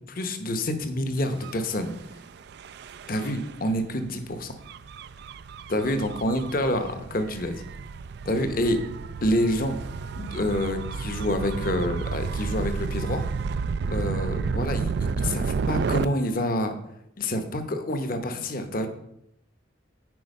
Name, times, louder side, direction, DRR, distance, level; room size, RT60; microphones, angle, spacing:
voice 1, 0.0-1.9 3.1-4.5 5.7-7.6 8.2-8.8 9.2-9.8 10.2-13.2 13.9-16.8 17.2-18.9, left 1 dB, 45° left, 8 dB, 0.9 m, -27 dB
Gull seagull / Waves surf / Siren, 1.3-16.1, right 5 dB, 55° right, 0.3 m, -31 dB
9.5 x 4.5 x 5.3 m, 0.79 s
head